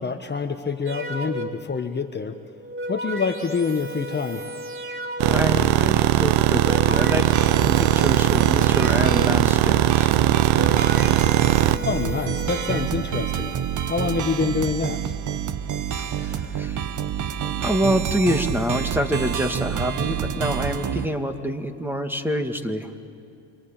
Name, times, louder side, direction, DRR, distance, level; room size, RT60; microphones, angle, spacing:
voice 1, 0.0-2.3 2.9-4.5 11.8-13.5 13.9-15.1, left 5 dB, 25° left, 6 dB, 1.4 m, -26 dB
sound 1, 0.9-1.8 2.5-5.6 6.4-9.6 10.3-12.8, right 1 dB, 30° right, 3.0 m, -34 dB
sound 2, 5.2-11.8, right 14 dB, 75° right, 1.0 m, -19 dB
voice 2, 5.3-10.1 16.0-16.8 17.6-22.9, equal, 5° right, 6 dB, 2.2 m, -26 dB
sound 3, 7.3-21.1, right 8 dB, 45° right, 1.4 m, -28 dB
28.0 x 24.0 x 9.0 m, 2.4 s
supercardioid pair, 75°, 40 cm